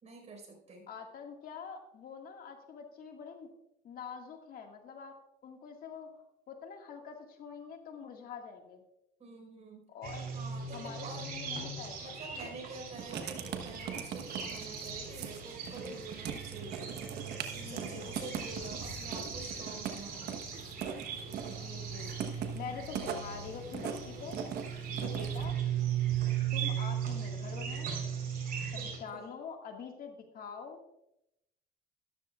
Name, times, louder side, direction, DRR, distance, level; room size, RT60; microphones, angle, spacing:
voice 1, 0.0-0.9 9.2-9.9 10.3-11.3 12.0-16.9 17.5-20.3 28.8-29.3, right 3 dB, 40° right, 1 dB, 4.6 m, -47 dB
voice 2, 0.9-3.5 3.8-5.1 5.4-6.1 6.5-8.8 9.9-10.3 10.7-12.1 17.6-18.3 21.5-24.4 25.0-25.6 26.5-27.9 28.7-30.8, left 6 dB, 60° left, 3 dB, 1.9 m, -45 dB
sound 1, 10.0-29.0, right 7 dB, 60° right, 4.1 m, -38 dB
Writing, 12.9-25.5, right 8 dB, 75° right, 1.2 m, -41 dB
13.5 x 13.0 x 2.4 m, 0.84 s
cardioid pair, 110°, 17 cm